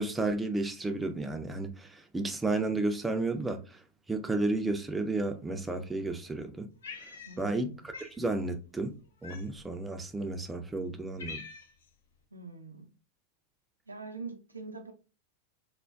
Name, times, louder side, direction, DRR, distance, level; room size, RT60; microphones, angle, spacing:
voice 1, 0.0-3.8 4.1-6.7 7.4-8.9 9.2-11.4, right 2 dB, 10° right, 0.4 m, -32 dB
Cat, 6.8-7.6 7.9-8.2 9.2-9.7 10.4-10.5 10.9-11.9, left 4 dB, 65° left, 0.6 m, -45 dB
voice 2, 7.3-7.7 12.3-12.9 13.9-14.9, right 4 dB, 80° right, 0.4 m, -43 dB
3.3 x 2.1 x 2.3 m
figure-of-eight pair, 90°, 0 cm